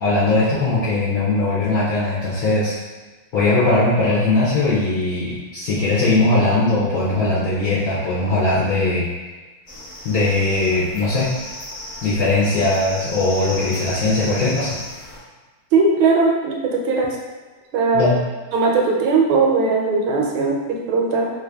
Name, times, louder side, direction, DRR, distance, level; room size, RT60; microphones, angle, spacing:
voice 1, 0.0-2.7 3.3-9.0 10.0-11.3 12.0-14.8 17.9-18.2, left 2 dB, 65° left, -8 dB, 0.9 m, -19 dB
sound 1, 9.7-15.2, left 1 dB, 25° left, 1.2 m, -35 dB
voice 2, 15.7-17.2 17.7-18.1 18.5-21.3, right 4 dB, 80° right, -1 dB, 1.4 m, -18 dB
3.2 x 2.5 x 3.3 m, 1.3 s
omnidirectional pair, 2.3 m